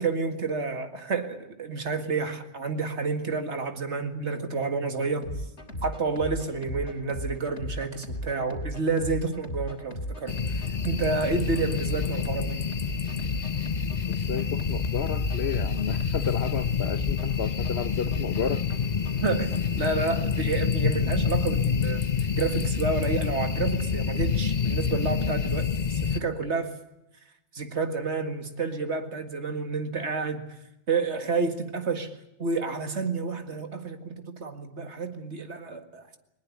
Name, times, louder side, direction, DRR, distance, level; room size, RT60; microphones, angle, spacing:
voice 1, 0.0-5.3 5.8-12.6 19.2-22.0 22.3-26.7 27.5-30.4 30.9-32.1 32.4-36.2, right 4 dB, 80° right, 2.3 m, -30 dB
sound 1, 5.2-20.2, equal, 90° left, 3.5 m, -37 dB
sound 2, 10.3-26.2, left 6 dB, 40° left, 1.0 m, -28 dB
voice 2, 14.1-18.6, left 6 dB, 70° left, 1.3 m, -32 dB
20.5 x 20.0 x 8.5 m
omnidirectional pair, 1.1 m